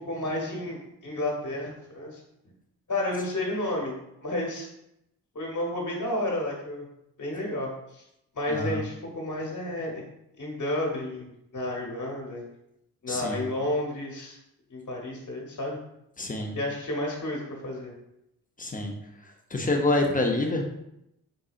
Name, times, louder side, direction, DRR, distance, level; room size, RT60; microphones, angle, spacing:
voice 1, 0.1-2.2 2.9-3.9 4.2-4.7 5.3-6.9 7.2-8.0 8.3-10.0 10.4-12.4 13.0-14.4 14.7-15.8 16.5-17.9, left 1 dB, 45° left, -1 dB, 1.2 m, -31 dB
voice 2, 8.5-8.8 13.1-13.4 16.2-16.6 18.6-18.9 19.2-20.7, left 2 dB, 20° left, 2 dB, 0.7 m, -27 dB
3.7 x 2.7 x 2.4 m, 0.82 s
supercardioid pair, 45°, 42 cm